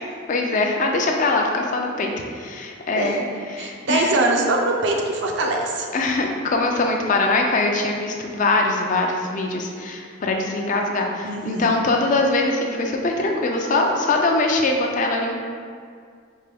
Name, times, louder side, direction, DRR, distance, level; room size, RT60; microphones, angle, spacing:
voice 1, 0.3-3.2 3.5-4.2 5.9-15.3, left 2 dB, 40° left, 2 dB, 0.3 m, -22 dB
voice 2, 3.6-5.9 11.2-11.8, right 2 dB, 60° right, 1 dB, 0.4 m, -22 dB
4.3 x 2.2 x 3.4 m, 2.1 s
head